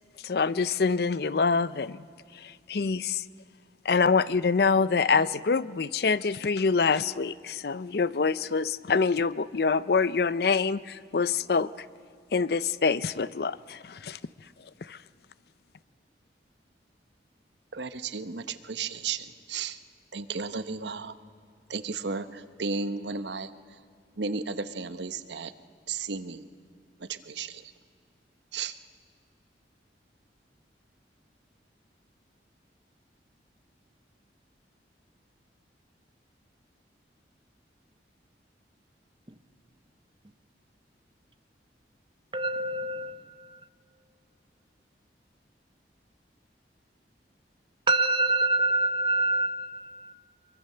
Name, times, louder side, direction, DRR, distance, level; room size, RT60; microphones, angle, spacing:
voice 1, 0.2-2.1 2.3-3.2 3.8-11.7 12.3-14.2 14.8-15.0, left 5 dB, 60° left, 0.5 m, -25 dB
voice 2, 17.7-19.8 20.1-21.1 21.7-23.8 24.2-25.5 25.9-26.5 27.0-27.7 28.5-28.8, right 4 dB, 75° right, 0.9 m, -34 dB
voice 3, 42.3-43.6 47.9-50.1, right 2 dB, 25° right, 1.1 m, -26 dB
24.5 x 23.0 x 6.8 m
head